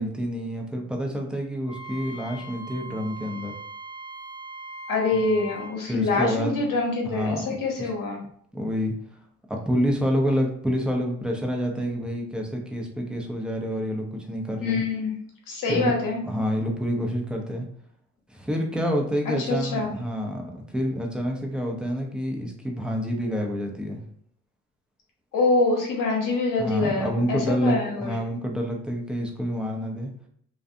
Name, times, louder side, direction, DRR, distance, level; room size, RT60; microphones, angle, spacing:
voice 1, 0.0-3.5 5.1-5.2 5.8-6.6 7.0-7.9 8.5-8.9 9.5-14.8 15.7-15.9 16.2-17.7 18.3-24.0 26.6-30.1, equal, ahead, 1 dB, 0.6 m, -28 dB
Wind instrument woodwind instrument, 1.7-5.8, right 2 dB, 45° left, 0.6 m, -40 dB
voice 2, 4.9-8.2 14.6-15.1 15.5-16.2 19.3-19.9 25.3-28.1, left 3 dB, 60° left, -1 dB, 1.0 m, -25 dB
2.4 x 2.2 x 2.6 m, 0.64 s
hypercardioid pair, 50°, 37 cm